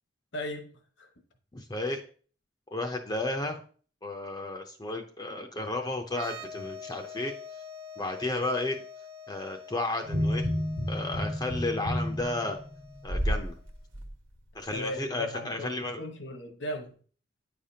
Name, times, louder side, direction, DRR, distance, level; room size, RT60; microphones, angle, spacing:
voice 1, 0.3-0.7 1.0-1.1 14.7-17.0, left 1 dB, 70° left, 1.1 m, -37 dB
voice 2, 1.5-2.0 2.7-3.6 4.0-7.3 8.0-8.8 9.3-10.5 10.9-12.6 13.0-13.5 14.5-16.0, left 2 dB, 20° left, 0.6 m, -33 dB
sound 1, 6.1-13.6, left 4 dB, 30° right, 1.0 m, -46 dB
sound 2, 10.0-13.5 13.9-14.1, equal, 85° right, 1.2 m, -30 dB
9.5 x 5.0 x 2.8 m
head